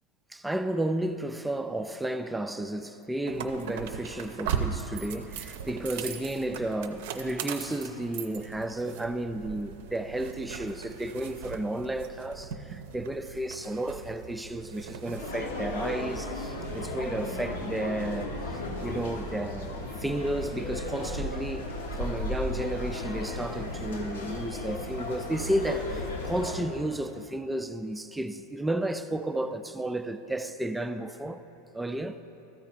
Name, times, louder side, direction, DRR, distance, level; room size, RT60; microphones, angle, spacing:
voice 1, 0.3-21.7 22.0-31.4 31.7-32.1, right 1 dB, 5° right, 0.3 m, -32 dB
sound 1, 3.3-15.3, right 7 dB, 55° right, 0.5 m, -38 dB
sound 2, 15.2-26.6, left 1 dB, 75° left, 1.2 m, -35 dB
13.0 x 4.6 x 4.6 m
figure-of-eight pair, 90°, 0 cm